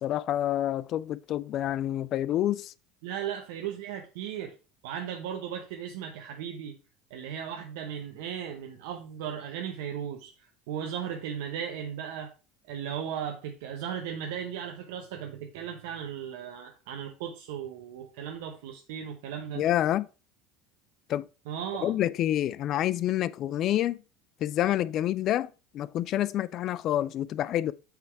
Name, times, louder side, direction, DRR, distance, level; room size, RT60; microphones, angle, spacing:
voice 1, 0.0-2.7 19.5-20.1 21.1-21.2 21.8-24.0 24.4-27.7, left 12 dB, 50° left, 0.4 m, -28 dB
voice 2, 3.0-4.5 4.8-6.7 7.1-10.3 10.7-12.3 12.7-19.6 21.5-21.9, right 8 dB, 80° right, 0.8 m, -36 dB
8.0 x 3.5 x 4.6 m
supercardioid pair, 105°, 0 cm